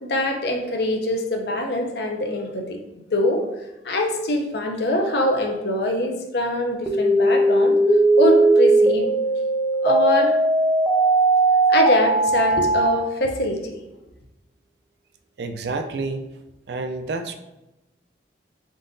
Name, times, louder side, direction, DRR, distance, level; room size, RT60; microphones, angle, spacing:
voice 1, 0.0-2.8 3.1-3.4 3.8-7.8 8.2-9.1 9.8-10.4 11.7-13.8, left 1 dB, 65° left, 4 dB, 0.6 m, -23 dB
sound 1, 6.9-12.9, right 2 dB, ahead, 0.4 m, -18 dB
voice 2, 15.4-16.3 16.7-17.3, right 3 dB, 65° right, 7 dB, 0.4 m, -29 dB
3.8 x 3.8 x 2.6 m, 0.94 s
head